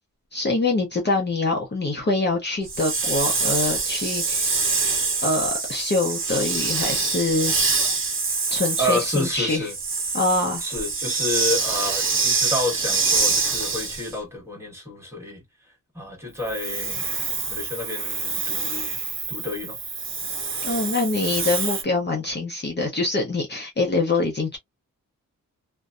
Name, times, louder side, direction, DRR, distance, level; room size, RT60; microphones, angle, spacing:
voice 1, 0.3-4.5 5.2-7.5 8.5-9.7 10.1-10.6 20.6-24.6, left 3 dB, 30° left, 0.7 m, -24 dB
Hiss, 2.7-14.1 16.4-21.8, right 4 dB, 40° right, 0.8 m, -25 dB
voice 2, 8.8-9.7 10.6-15.4 15.9-17.0 17.5-19.0 19.3-19.8, left 1 dB, 10° right, 1.3 m, -29 dB
2.6 x 2.2 x 2.4 m
wide cardioid pair, 130°, 33 cm